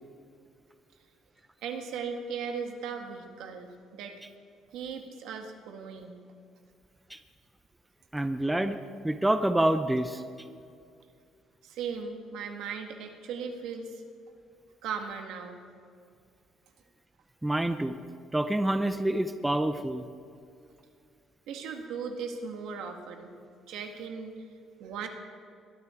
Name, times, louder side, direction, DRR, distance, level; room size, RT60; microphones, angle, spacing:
voice 1, 1.6-4.2 4.7-6.2 11.6-14.0 14.8-15.6 21.5-23.3 23.7-24.4 24.8-25.1, right 6 dB, 75° right, 4 dB, 1.9 m, -37 dB
voice 2, 8.1-8.8 9.0-10.2 17.4-18.0 18.3-20.0, right 1 dB, 5° right, 9 dB, 0.5 m, -27 dB
21.5 x 13.0 x 4.5 m, 2.4 s
cardioid pair, 175°, 0 cm